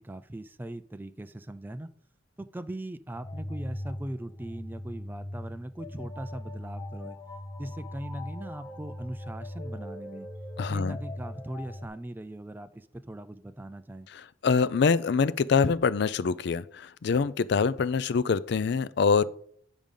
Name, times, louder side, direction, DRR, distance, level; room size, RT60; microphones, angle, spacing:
voice 1, 0.0-1.9 2.4-7.2 7.6-10.3 10.7-14.1, right 1 dB, 10° right, 0.3 m, -40 dB
sound 1, 3.1-11.9, left 1 dB, 20° left, 1.2 m, -40 dB
voice 2, 10.6-11.0 14.1-19.2, left 5 dB, 60° left, 0.4 m, -25 dB
9.1 x 5.0 x 5.3 m
head